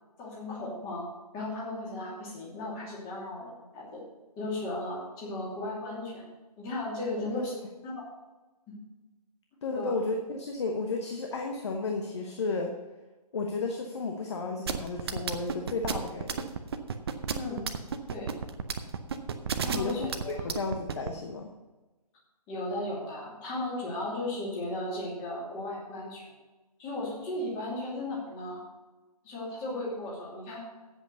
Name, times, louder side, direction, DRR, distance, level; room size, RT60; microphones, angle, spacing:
voice 1, 0.2-1.1 1.3-4.0 4.4-6.3 6.6-7.5 7.8-8.1 8.7-8.8 9.7-9.9 17.3-17.7 18.1-18.3 19.6-20.5 22.5-26.3 26.8-28.6 29.2-30.6, left 1 dB, 15° left, -4 dB, 2.7 m, -36 dB
voice 2, 9.6-12.7 13.3-16.5 19.7-21.5, left 3 dB, 45° left, 3 dB, 1.1 m, -33 dB
sound 1, 14.7-21.1, right 6 dB, 40° right, 0.7 m, -31 dB
8.2 x 7.9 x 6.7 m, 1.2 s
figure-of-eight pair, 150°, 20 cm